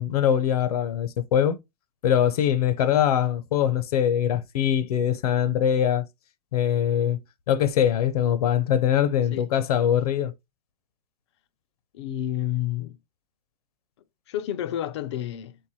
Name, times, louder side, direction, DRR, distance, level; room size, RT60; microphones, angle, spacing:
voice 1, 0.0-1.6 2.0-6.0 6.5-7.2 7.5-10.3, left 9 dB, 65° left, 0.8 m, -22 dB
voice 2, 11.9-13.0 14.3-15.6, left 12 dB, 45° left, 0.4 m, -30 dB
4.6 x 3.4 x 3.1 m
hypercardioid pair, 155°, 21 cm